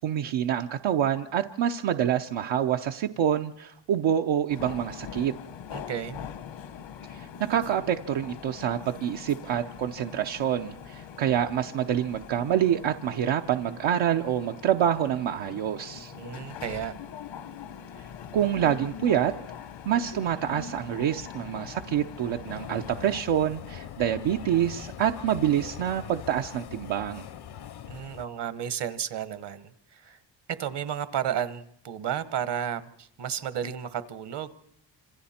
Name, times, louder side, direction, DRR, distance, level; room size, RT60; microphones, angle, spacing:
voice 1, 0.0-5.3 7.1-16.1 18.3-19.3 19.9-27.3, right 10 dB, 85° right, 4 dB, 0.8 m, -27 dB
sound 1, 4.5-23.2, left 8 dB, 75° left, 1.2 m, -42 dB
voice 2, 5.7-6.3 16.1-17.0 27.9-30.2 30.5-34.5, right 9 dB, 65° right, 13 dB, 1.2 m, -33 dB
sound 2, 22.5-28.3, left 10 dB, 60° left, 0.7 m, -42 dB
27.0 x 27.0 x 4.3 m, 0.75 s
cardioid pair, 110°, 45 cm